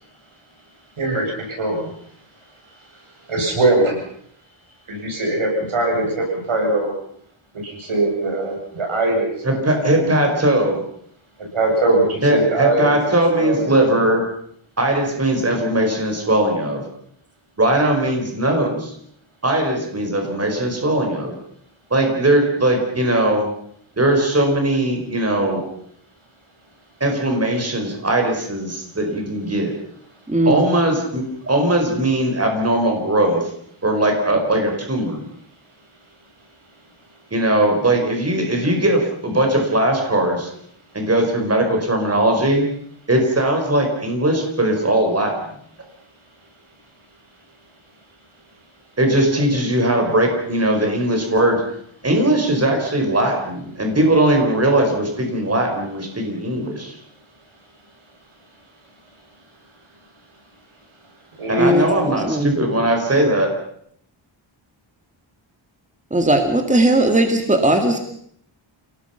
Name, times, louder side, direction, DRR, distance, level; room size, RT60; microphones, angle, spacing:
voice 1, 1.0-1.9 3.3-4.0 4.9-6.9 7.5-10.2 11.4-14.1 17.7-17.8 19.7-19.8 49.4-49.5 61.4-61.7, right 2 dB, 80° right, 0 dB, 8.0 m, -22 dB
voice 2, 9.4-10.8 12.2-14.2 14.8-16.8 17.6-18.9 19.4-21.3 21.9-23.5 24.0-25.6 27.0-29.7 30.4-33.5 33.8-35.2 37.3-40.5 40.9-42.6 43.1-45.3 49.0-51.6 52.0-57.0 61.5-63.5, right 1 dB, 30° right, 3 dB, 4.9 m, -19 dB
voice 3, 30.3-30.6 61.6-62.5 66.1-68.0, right 1 dB, 15° right, 5 dB, 2.1 m, -18 dB
28.5 x 18.5 x 5.8 m, 0.66 s
wide cardioid pair, 140°, 48 cm